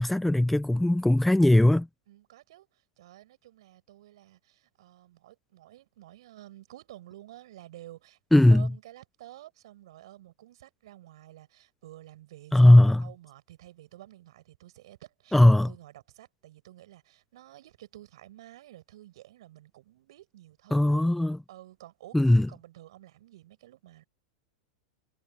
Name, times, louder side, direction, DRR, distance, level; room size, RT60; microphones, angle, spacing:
voice 1, 0.0-1.9 8.3-8.7 12.5-13.1 15.3-15.7 20.7-21.4 22.1-22.5, left 1 dB, 5° left, 0.6 m, -19 dB
voice 2, 2.1-8.2 8.5-21.0 21.5-24.1, right 14 dB, 70° right, 5.6 m, -51 dB
hypercardioid pair, 100°, 3 cm